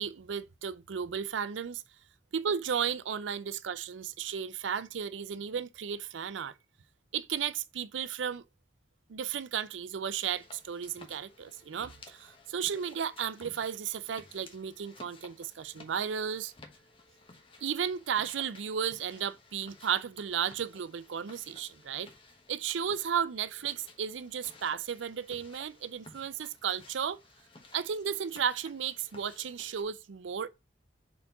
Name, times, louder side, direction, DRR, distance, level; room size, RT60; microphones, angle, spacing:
voice 1, 0.0-1.8 2.3-6.5 7.1-8.4 9.1-16.5 17.6-22.1 22.5-27.2 27.7-30.5, right 7 dB, 85° right, 0.5 m, -34 dB
sound 1, 10.3-29.8, left 3 dB, 30° left, 1.0 m, -56 dB
4.3 x 4.2 x 5.3 m
head